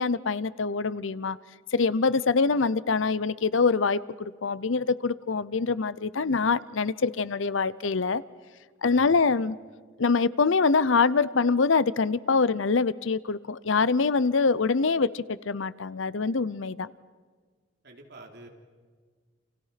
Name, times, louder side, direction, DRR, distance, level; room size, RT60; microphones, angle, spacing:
voice 1, 0.0-1.4 1.7-8.2 8.8-9.6 10.0-16.9, left 4 dB, 70° left, 0.7 m, -24 dB
voice 2, 8.9-9.2 17.8-18.5, right 2 dB, 55° right, 3.8 m, -47 dB
29.5 x 28.0 x 5.9 m
head